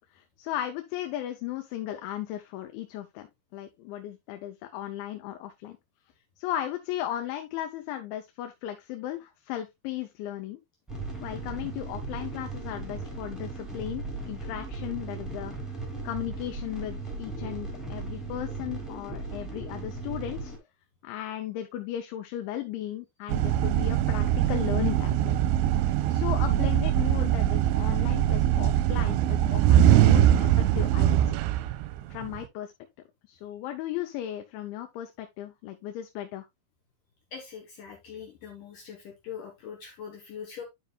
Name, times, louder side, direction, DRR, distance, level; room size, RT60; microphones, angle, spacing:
voice 1, 0.1-3.3 3.5-5.8 6.4-10.6 11.2-15.5 16.0-20.5 21.0-25.4 25.8-31.4 32.1-32.7 33.2-36.5, left 12 dB, 85° left, 3.1 m, -36 dB
sound 1, 10.9-20.6, right 3 dB, ahead, 1.3 m, -37 dB
sound 2, 23.3-32.4, right 11 dB, 90° right, 3.0 m, -22 dB
voice 2, 37.3-40.6, left 7 dB, 65° left, 2.3 m, -42 dB
11.5 x 5.5 x 2.3 m
omnidirectional pair, 5.2 m